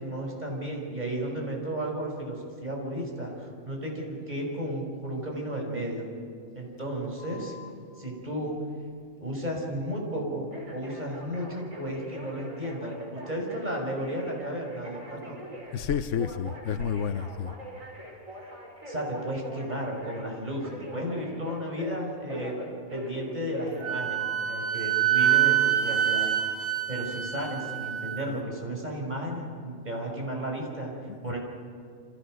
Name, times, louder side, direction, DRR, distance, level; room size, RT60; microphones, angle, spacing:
voice 1, 0.0-6.1 6.5-7.6 8.0-8.6 9.2-15.4 18.4-18.5 18.9-22.5 22.9-26.3 26.9-30.9 31.2-31.4, right 1 dB, 35° right, 6.0 m, -33 dB
Telephone, 7.2-7.7 10.5-24.7 25.2-25.7, equal, 85° right, 6.4 m, -41 dB
voice 2, 15.7-17.5 31.2-31.4, left 7 dB, 70° left, 1.2 m, -30 dB
Wind instrument woodwind instrument, 23.8-28.3, right 12 dB, 60° right, 1.7 m, -26 dB
28.5 x 27.0 x 6.5 m
omnidirectional pair, 1.3 m